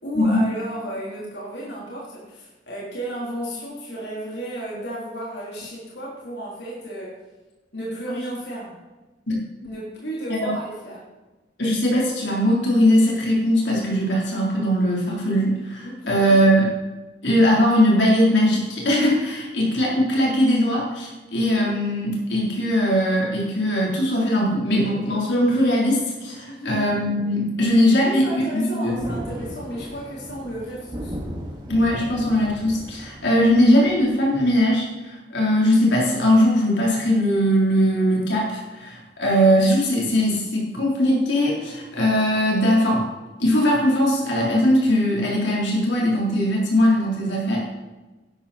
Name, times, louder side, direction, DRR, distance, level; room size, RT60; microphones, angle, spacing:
voice 1, 0.0-7.2 7.7-8.8 9.6-11.0 15.8-16.2 26.4-26.9 28.0-31.2, right 1 dB, 70° left, -5 dB, 3.4 m, -33 dB
voice 2, 11.6-16.7 17.2-29.0 31.7-43.0 43.4-47.6, equal, 90° left, -4 dB, 3.6 m, -20 dB
Thunder, 28.9-34.7, equal, 25° right, 2.2 m, -36 dB
12.0 x 11.0 x 4.2 m, 1.1 s
head